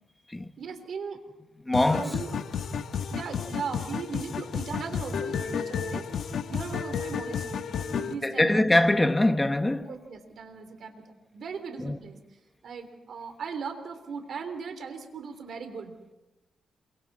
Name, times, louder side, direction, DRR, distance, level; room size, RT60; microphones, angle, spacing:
voice 1, 0.6-1.2 1.8-2.4 3.0-8.8 9.9-12.2 12.6-16.1, right 5 dB, 65° right, 3.4 m, -38 dB
sound 1, 1.7-8.1, left 6 dB, 70° left, 1.3 m, -32 dB
voice 2, 1.7-2.2 8.2-9.9 11.8-12.0, left 1 dB, 15° left, 1.2 m, -23 dB
28.0 x 24.5 x 4.3 m
cardioid pair, 85°, 0 cm